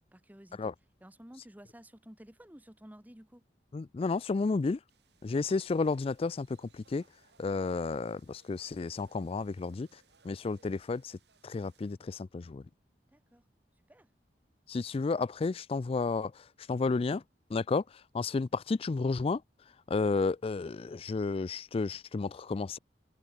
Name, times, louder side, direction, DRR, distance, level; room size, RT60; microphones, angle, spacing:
voice 1, 0.1-0.7 1.0-3.4 13.1-13.4 13.9-14.1, equal, 10° right, 1.3 m, -53 dB
voice 2, 3.7-4.8 5.2-7.0 7.4-11.2 11.4-12.6 14.7-17.2 17.5-19.4 19.9-22.8, left 4 dB, 35° left, 0.3 m, -32 dB
sound 1, 4.9-11.9, right 5 dB, 65° right, 5.5 m, -67 dB
head